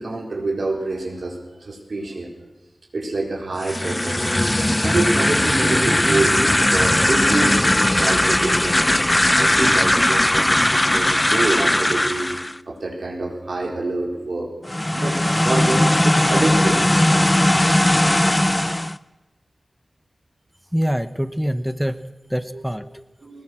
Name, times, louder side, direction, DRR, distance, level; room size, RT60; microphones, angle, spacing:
voice 1, 0.0-2.3 2.9-4.3 4.8-9.0 9.3-12.3 12.7-14.5 14.9-16.9 22.5-22.6 23.2-23.4, right 2 dB, 75° right, 0 dB, 4.3 m, -26 dB
sound 1, 3.5-12.6 14.6-19.0, left 1 dB, 20° left, 0.6 m, -18 dB
voice 2, 20.7-23.0, equal, 5° right, 11 dB, 1.0 m, -25 dB
20.5 x 20.0 x 6.3 m, 1.1 s
wide cardioid pair, 85°, 0 cm